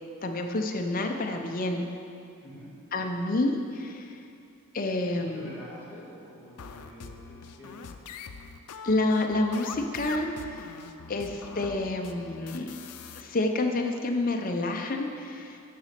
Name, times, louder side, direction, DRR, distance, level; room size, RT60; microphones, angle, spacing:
voice 1, 0.2-1.9 2.9-4.2 4.7-5.5 8.8-10.7 11.1-12.7 13.1-15.6, left 2 dB, 40° left, 3 dB, 0.6 m, -29 dB
voice 2, 2.4-2.7 5.1-7.8 11.3-11.4, equal, 10° right, -8 dB, 1.9 m, -46 dB
sound 1, 6.6-13.2, left 5 dB, 85° left, 0.5 m, -43 dB
9.3 x 4.1 x 6.6 m, 2.6 s
head